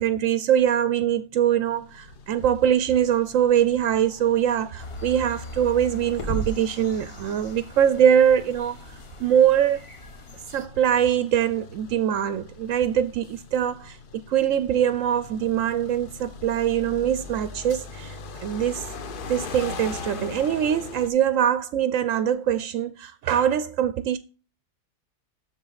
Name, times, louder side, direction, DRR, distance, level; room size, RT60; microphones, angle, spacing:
voice 1, 0.0-8.8 9.2-9.8 10.5-14.0 14.3-18.9 19.3-24.2, right 9 dB, 65° right, 0.8 m, -23 dB
sound 1, 1.7-21.1, left 4 dB, 50° left, 0.6 m, -42 dB
sound 2, 3.8-14.7 15.2-17.9 18.2-22.9, right 3 dB, 80° left, 2.5 m, -42 dB
sound 3, 4.8-10.7, left 1 dB, 20° left, 1.0 m, -42 dB
7.2 x 6.9 x 4.0 m
omnidirectional pair, 1.7 m